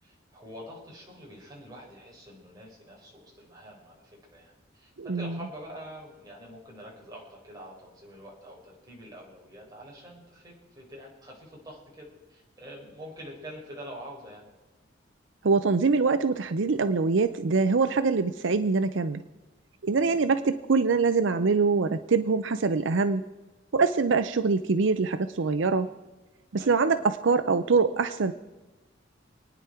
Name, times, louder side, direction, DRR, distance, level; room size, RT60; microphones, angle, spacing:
voice 1, 0.0-14.5 19.9-20.2 26.6-26.8, equal, 20° right, -3 dB, 4.6 m, -46 dB
voice 2, 5.0-5.4 15.4-19.2 19.8-23.3 23.7-25.9 26.5-28.3, right 4 dB, 70° right, 11 dB, 0.6 m, -24 dB
28.0 x 9.8 x 4.4 m, 1.2 s
head